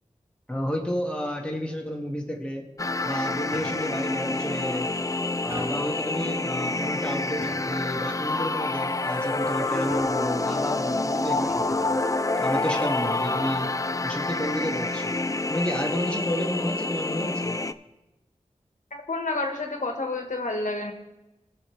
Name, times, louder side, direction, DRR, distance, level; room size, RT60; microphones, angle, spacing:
voice 1, 0.5-2.6 3.0-4.9 5.4-12.0 12.4-13.7 14.0-15.2 15.5-17.6, equal, 10° left, 0 dB, 1.9 m, -31 dB
sound 1, 2.8-17.7, left 2 dB, 25° left, 0.4 m, -28 dB
sound 2, 3.5-4.0 5.5-6.0 7.4-7.9 9.9-10.5 11.5-11.9 13.4-13.7, right 1 dB, 20° right, 3.8 m, -43 dB
voice 2, 18.9-20.9, left 2 dB, 80° left, 2 dB, 1.4 m, -29 dB
19.5 x 6.6 x 3.2 m, 1.0 s
wide cardioid pair, 50°, 13 cm